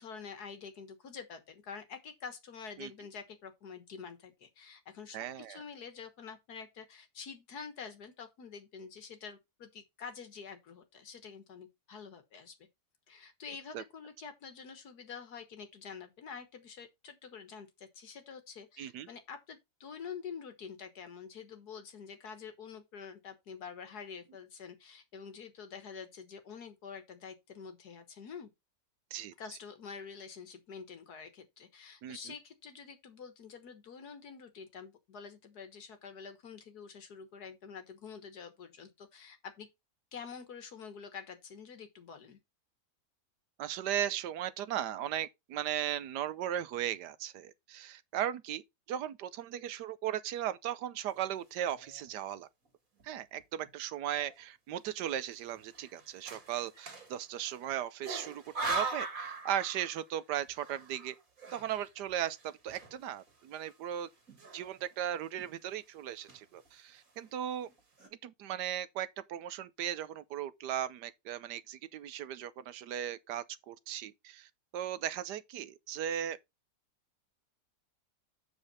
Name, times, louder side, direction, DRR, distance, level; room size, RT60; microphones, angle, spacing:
voice 1, 0.0-12.5 13.1-28.5 29.4-39.7 40.1-42.4, left 6 dB, 70° left, 1.8 m, -47 dB
voice 2, 5.1-5.6 13.7-13.8 18.8-19.1 29.1-29.3 32.0-32.3 43.6-48.6 48.9-52.5 53.0-58.4 58.7-61.1 61.5-64.1 64.5-67.7 68.2-76.4, right 11 dB, 80° right, 1.3 m, -37 dB
sound 1, 51.6-52.1 52.7-52.8 53.0-53.7 54.2-54.4 55.3-57.6 58.0-60.2 60.5-63.3 63.6-63.7 64.3-65.0 65.4-65.7 66.1-66.7 67.3-67.4 67.6-68.1, right 3 dB, 55° right, 2.4 m, -41 dB
7.5 x 6.4 x 4.2 m
omnidirectional pair, 1.8 m